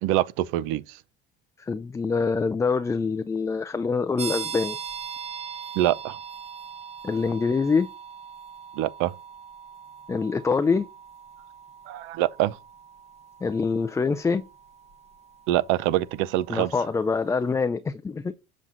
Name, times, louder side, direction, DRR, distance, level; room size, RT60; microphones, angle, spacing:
voice 1, 0.0-1.0 5.8-6.2 8.8-9.1 11.9-12.6 15.5-16.7, right 14 dB, 75° right, 0.6 m, -25 dB
voice 2, 1.6-4.8 7.0-7.9 10.1-10.9 13.4-14.4 16.5-18.3, left 4 dB, 15° left, 0.4 m, -25 dB
sound 1, 4.2-16.7, right 7 dB, 30° right, 1.1 m, -40 dB
7.2 x 6.2 x 2.6 m
supercardioid pair, 110°, 21 cm